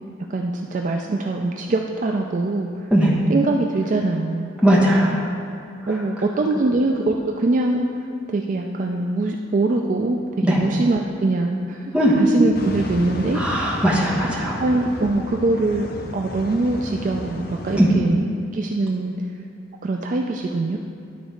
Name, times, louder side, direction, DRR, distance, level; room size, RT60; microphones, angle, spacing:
voice 1, 0.3-2.9 3.3-4.5 5.9-7.9 8.3-10.2 10.5-11.8 12.2-13.4 14.6-15.9 16.1-18.2 18.5-19.1 19.8-20.8, right 2 dB, 40° right, 2 dB, 0.3 m, -23 dB
voice 2, 4.6-5.1 10.4-10.6 11.9-12.1 13.3-14.6 17.7-17.9, equal, 5° right, -5 dB, 1.2 m, -18 dB
sound 1, 12.5-17.9, left 1 dB, 50° left, 0.6 m, -32 dB
11.0 x 4.0 x 5.0 m, 2.3 s
head